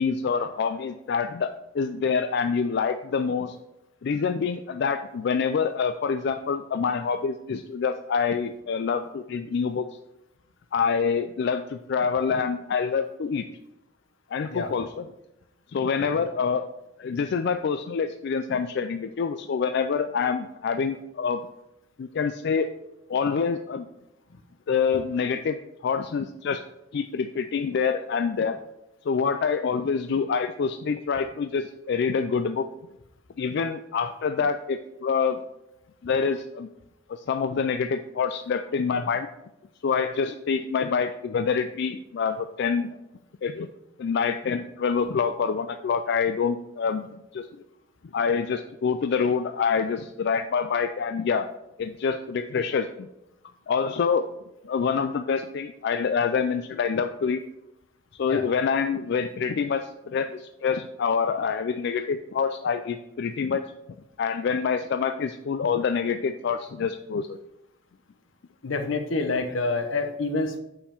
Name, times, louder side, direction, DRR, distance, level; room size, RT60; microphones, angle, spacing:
voice 1, 0.0-3.6 4.0-9.9 10.7-13.4 14.3-14.9 15.7-16.7 17.0-21.4 22.0-22.7 23.1-23.9 24.7-26.6 26.9-28.6 29.1-32.7 33.4-35.4 36.0-36.7 37.3-39.3 39.8-42.9 43.4-43.7 44.0-47.1 47.3-47.5 48.1-51.5 51.8-52.9 53.7-54.3 54.6-57.4 58.2-63.6 64.2-67.4, left 6 dB, 60° left, 8 dB, 0.3 m, -26 dB
voice 2, 68.6-70.6, left 3 dB, 80° left, 8 dB, 0.9 m, -27 dB
6.9 x 5.5 x 4.4 m, 0.90 s
head